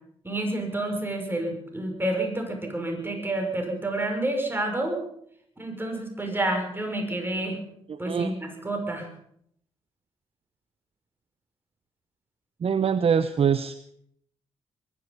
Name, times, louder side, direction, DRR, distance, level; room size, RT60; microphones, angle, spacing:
voice 1, 0.2-5.0 5.6-7.6 8.0-9.1, right 1 dB, 15° right, 3 dB, 6.1 m, -29 dB
voice 2, 7.9-8.3 12.6-13.7, right 7 dB, 45° right, 13 dB, 0.8 m, -24 dB
22.5 x 11.0 x 5.5 m, 0.69 s
hypercardioid pair, 40°, 13 cm